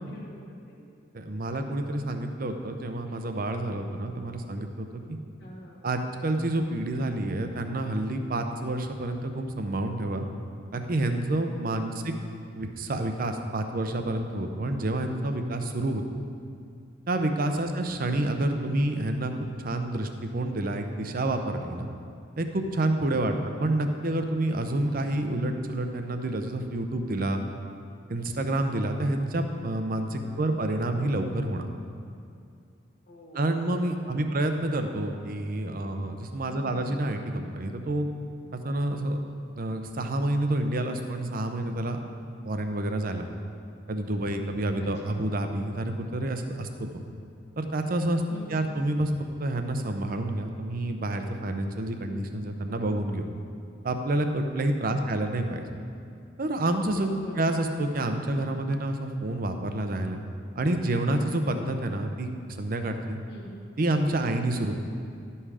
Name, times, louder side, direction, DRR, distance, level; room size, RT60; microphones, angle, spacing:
voice 1, 0.1-0.4 0.7-1.0 5.4-5.8 11.7-12.1 17.5-17.9 23.2-23.5 30.2-30.7 33.0-34.4 36.5-36.9 44.8-45.2 48.3-48.7 54.8-55.4 57.1-57.5 63.3-63.7, equal, 60° left, -5 dB, 1.2 m, -46 dB
voice 2, 1.1-5.2 5.8-10.3 10.7-12.1 12.5-16.0 17.1-19.3 19.6-21.9 22.4-27.4 28.1-31.7 33.3-38.1 38.5-39.2 39.6-42.0 42.4-43.2 43.9-46.7 47.6-48.2 48.5-53.3 53.8-55.6 56.4-60.2 60.6-62.3 62.6-63.2 63.8-64.8, right 1 dB, 50° right, 6 dB, 0.7 m, -28 dB
11.5 x 5.5 x 4.9 m, 2.4 s
head